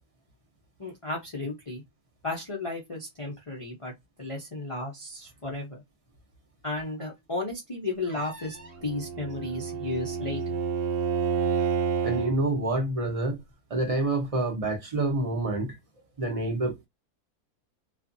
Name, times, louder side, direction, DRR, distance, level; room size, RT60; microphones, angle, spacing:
voice 1, 0.8-1.8 2.2-3.9 4.2-5.8 6.6-10.6, left 2 dB, 45° left, 0.4 m, -34 dB
Bowed string instrument, 8.6-12.4, right 6 dB, 75° right, 1.2 m, -29 dB
voice 2, 12.0-13.4 13.7-15.8 16.2-16.9, right 2 dB, 35° right, 0.5 m, -27 dB
2.5 x 2.4 x 2.6 m
omnidirectional pair, 1.7 m